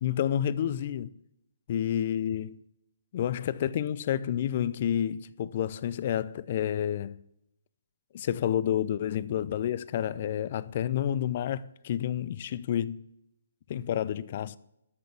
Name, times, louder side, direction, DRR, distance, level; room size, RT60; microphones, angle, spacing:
voice 1, 0.0-1.1 1.7-2.6 3.1-7.2 8.1-13.0 13.7-14.6, left 10 dB, 45° left, 0.5 m, -29 dB
13.0 x 6.5 x 7.0 m
figure-of-eight pair, 140°, 0 cm